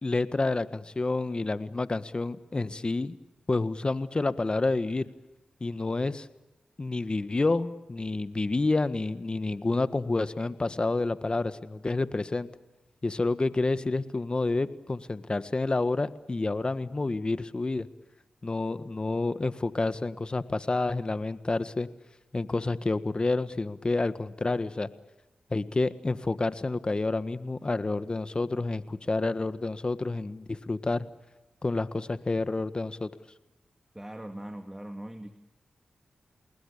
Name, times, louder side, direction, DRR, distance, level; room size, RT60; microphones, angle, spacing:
voice 1, 0.0-3.2 3.5-5.1 5.6-6.3 6.8-12.5 13.0-17.9 18.4-21.9 22.3-24.9 25.5-31.1 31.6-33.1, left 3 dB, 40° left, 12 dB, 1.6 m, -29 dB
voice 2, 33.9-35.3, right 1 dB, 15° right, 6 dB, 2.3 m, -40 dB
29.0 x 20.5 x 8.6 m, 1.0 s
supercardioid pair, 40°, 3 cm